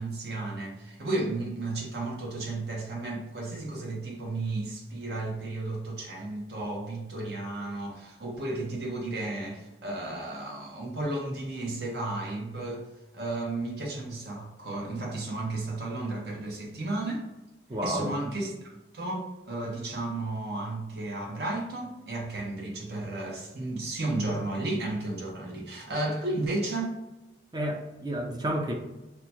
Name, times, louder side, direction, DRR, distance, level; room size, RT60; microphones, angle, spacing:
voice 1, 0.0-12.9 13.1-17.2 17.8-18.5 18.9-26.9, right 2 dB, 65° right, -1 dB, 0.9 m, -33 dB
voice 2, 17.7-18.2 27.5-28.7, equal, 25° right, 1 dB, 0.4 m, -30 dB
2.9 x 2.2 x 4.2 m, 1.1 s
head